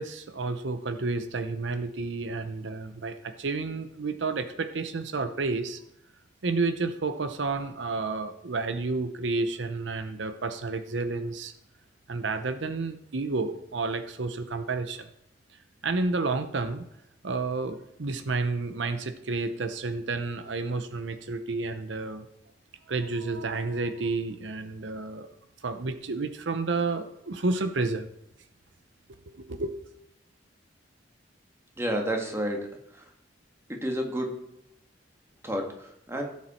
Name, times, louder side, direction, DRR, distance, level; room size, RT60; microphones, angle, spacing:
voice 1, 0.0-5.8 6.4-11.5 12.1-15.1 15.8-16.8 17.2-22.3 22.9-25.3 25.6-28.1 29.3-29.8, right 3 dB, 80° right, 9 dB, 0.8 m, -30 dB
voice 2, 31.8-32.6 33.7-34.3 35.4-36.3, equal, 15° right, 1 dB, 1.8 m, -30 dB
16.5 x 7.4 x 4.4 m, 0.79 s
head